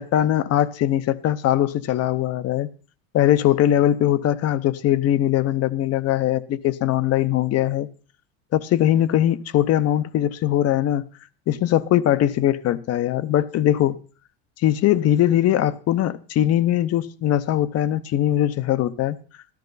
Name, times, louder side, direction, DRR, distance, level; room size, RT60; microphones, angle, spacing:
voice 1, 0.0-2.7 3.1-7.9 8.5-11.0 11.5-14.0 14.6-19.2, left 12 dB, 35° left, 0.7 m, -21 dB
13.0 x 13.0 x 4.0 m
supercardioid pair, 130°, 43 cm